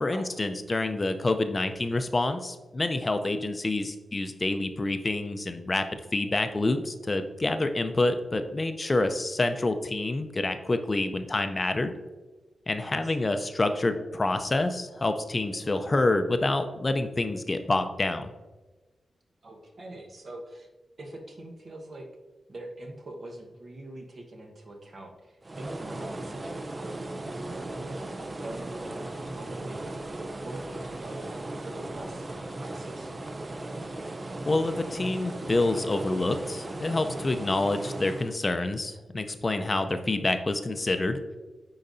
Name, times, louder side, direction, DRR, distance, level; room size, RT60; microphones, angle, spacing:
voice 1, 0.0-11.9 12.7-18.3 34.5-41.2, left 2 dB, 35° left, 8 dB, 0.5 m, -27 dB
voice 2, 13.0-13.3 19.4-20.7 21.0-22.1 22.5-26.7 27.2-28.1 28.4-31.3 31.6-33.1, right 1 dB, 55° right, 1 dB, 1.2 m, -43 dB
sound 1, 25.4-38.4, right 2 dB, 35° right, 0.5 m, -37 dB
9.7 x 3.9 x 2.6 m, 1.2 s
cardioid pair, 60°, 0 cm